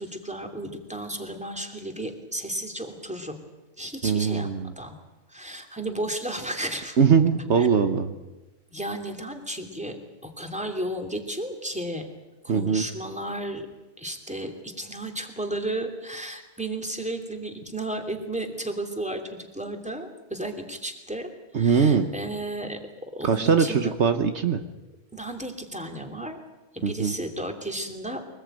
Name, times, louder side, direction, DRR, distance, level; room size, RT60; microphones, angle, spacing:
voice 1, 0.0-3.4 3.8-4.5 4.8-5.0 5.3-7.0 7.6-7.7 8.7-10.0 10.2-12.1 12.4-13.6 14.0-22.8 23.1-24.0 25.1-26.4 26.7-28.2, right 1 dB, 5° right, 4 dB, 2.8 m, -33 dB
voice 2, 4.0-4.7 7.0-8.1 12.5-12.8 21.5-22.1 23.2-24.6 26.8-27.1, right 6 dB, 65° right, 8 dB, 1.4 m, -21 dB
24.0 x 20.0 x 9.1 m, 1.1 s
omnidirectional pair, 1.3 m